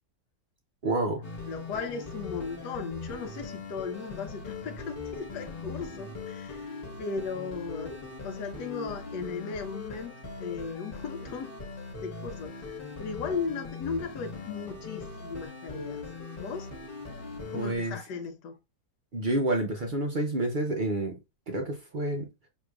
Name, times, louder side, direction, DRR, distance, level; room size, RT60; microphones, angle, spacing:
voice 1, 0.8-1.2 17.5-18.0 19.1-21.2 21.5-22.3, right 2 dB, 60° right, 0.5 m, -29 dB
sound 1, 1.2-17.7, left 4 dB, 35° left, 1.3 m, -40 dB
voice 2, 1.5-11.6 12.0-16.1 16.4-16.7 17.5-18.6 19.8-19.9, left 5 dB, 80° left, 1.3 m, -37 dB
6.2 x 3.1 x 2.3 m
omnidirectional pair, 1.8 m